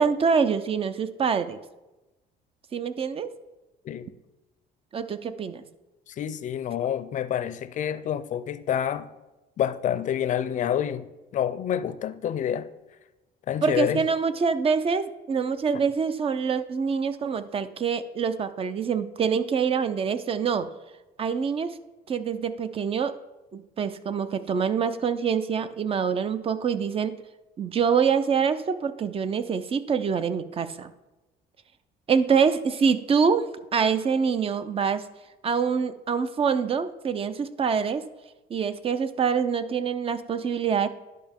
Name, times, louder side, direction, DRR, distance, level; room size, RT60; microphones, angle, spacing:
voice 1, 0.0-1.6 2.7-3.3 4.9-5.6 13.6-20.7 21.2-21.8 22.1-23.1 23.5-27.1 27.6-30.9 32.1-35.0 35.4-38.0 38.5-40.9, right 6 dB, 35° right, 0.5 m, -25 dB
voice 2, 6.1-9.1 9.6-11.1 11.3-12.7 13.5-14.0, left 9 dB, 50° left, 0.5 m, -28 dB
11.0 x 5.4 x 3.6 m
cardioid pair, 110°, 17 cm